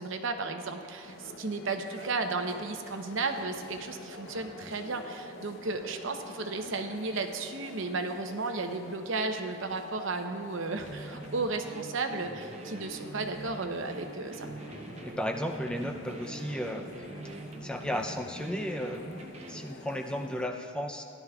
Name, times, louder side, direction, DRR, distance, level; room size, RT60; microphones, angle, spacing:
voice 1, 0.0-14.5, right 3 dB, 80° right, 6 dB, 0.8 m, -34 dB
sound 1, 1.0-20.5, left 2 dB, 70° left, 0.7 m, -48 dB
sound 2, 10.8-19.7, right 2 dB, 30° right, 0.7 m, -44 dB
voice 2, 15.0-16.9 17.6-19.0 19.5-21.0, equal, 5° left, 3 dB, 0.5 m, -34 dB
16.0 x 11.0 x 2.3 m, 2.3 s
head